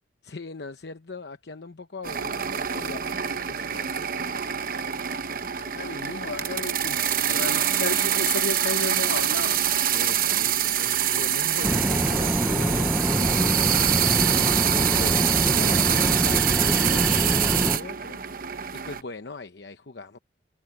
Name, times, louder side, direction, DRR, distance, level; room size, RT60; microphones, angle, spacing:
voice 1, 0.2-4.4 7.3-7.6 9.9-20.2, left 3 dB, 60° left, 0.9 m, -40 dB
sound 1, 2.0-19.0, right 10 dB, 50° right, 0.9 m, -25 dB
voice 2, 5.6-9.7, left 3 dB, 80° left, 2.8 m, -33 dB
sound 2, 11.6-17.8, equal, 5° right, 0.8 m, -25 dB
head